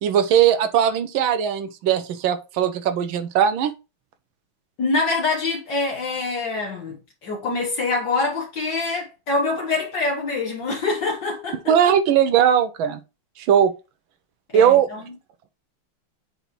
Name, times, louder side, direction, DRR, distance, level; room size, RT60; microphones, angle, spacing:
voice 1, 0.0-3.7 11.7-13.0 13.4-13.7 14.5-14.9, right 9 dB, 75° right, 1.4 m, -19 dB
voice 2, 4.8-11.6 14.5-15.0, left 3 dB, 60° left, 2.1 m, -25 dB
7.9 x 3.4 x 4.5 m
omnidirectional pair, 2.3 m